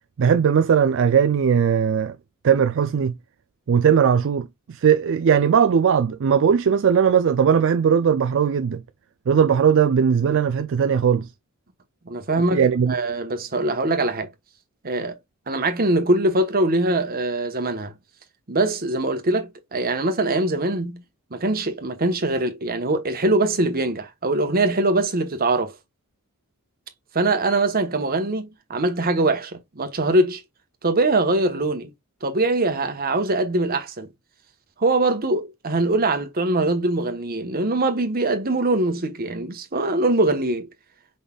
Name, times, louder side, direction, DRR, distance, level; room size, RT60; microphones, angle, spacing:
voice 1, 0.2-2.2 2.4-3.1 3.7-8.8 9.3-11.3 12.5-12.9, right 7 dB, 60° right, 0.4 m, -18 dB
voice 2, 12.0-14.3 14.8-15.2 15.5-17.9 18.5-21.0 21.3-25.7 27.1-30.4 30.8-31.9 32.2-34.1 34.8-40.7, right 2 dB, 45° right, 1.1 m, -22 dB
5.2 x 4.0 x 2.3 m
head